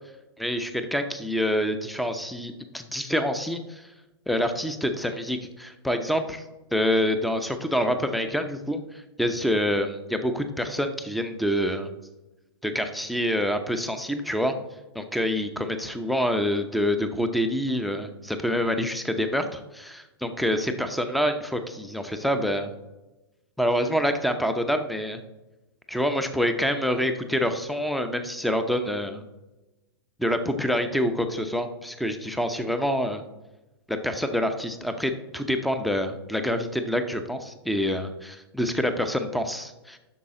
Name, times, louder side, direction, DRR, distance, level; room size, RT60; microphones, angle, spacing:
voice 1, 0.4-3.8 4.3-6.4 6.7-11.9 12.6-14.5 14.9-22.7 23.6-25.2 25.9-29.2 30.2-33.2 33.9-40.0, equal, ahead, 8 dB, 0.7 m, -26 dB
11.0 x 6.8 x 3.8 m, 1.0 s
figure-of-eight pair, 105°, 13 cm